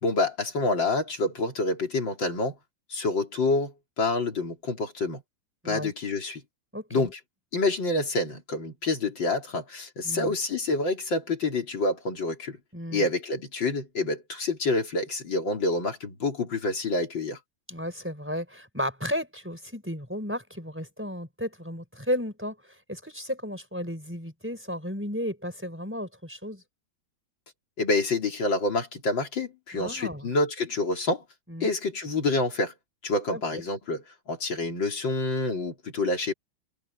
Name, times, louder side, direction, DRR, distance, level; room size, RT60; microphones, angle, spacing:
voice 1, 0.0-2.6 2.9-5.2 5.7-6.4 6.9-7.2 7.5-12.6 12.9-17.4 27.8-31.2 31.6-32.7 33.0-36.3, left 2 dB, 75° left, 4.1 m, -27 dB
voice 2, 6.7-7.1 10.0-10.3 12.7-13.0 17.7-26.6 29.7-30.3 31.5-31.7 33.3-33.6, equal, 5° right, 4.5 m, -34 dB
omnidirectional pair, 2.1 m